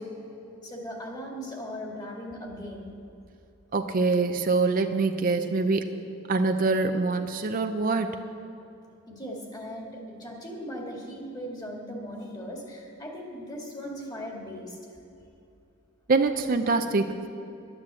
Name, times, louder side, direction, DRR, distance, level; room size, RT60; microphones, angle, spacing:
voice 1, 0.6-2.9 9.1-15.0, equal, 20° left, -1 dB, 2.0 m, -38 dB
voice 2, 3.7-5.9 6.3-8.1 16.1-17.3, right 3 dB, 45° right, 7 dB, 0.5 m, -24 dB
11.0 x 9.7 x 7.6 m, 2.7 s
head